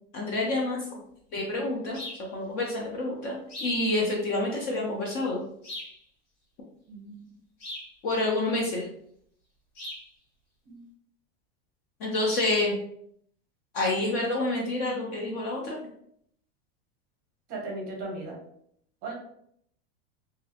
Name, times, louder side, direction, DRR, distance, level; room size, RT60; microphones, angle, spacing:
voice 1, 0.1-1.0 1.3-2.0 2.3-5.4 8.0-8.9 12.0-12.8 13.7-15.8, left 2 dB, 30° left, -1 dB, 0.4 m, -28 dB
sound 1, 1.9-2.3 3.5-3.8 5.6-6.0 7.6-7.9 9.8-10.1, left 1 dB, 75° left, 1.3 m, -39 dB
voice 2, 6.9-7.2 10.6-10.8 17.5-18.4 19.0-19.1, right 2 dB, 30° right, -1 dB, 0.7 m, -37 dB
2.4 x 2.0 x 2.7 m, 0.69 s
supercardioid pair, 155°, 31 cm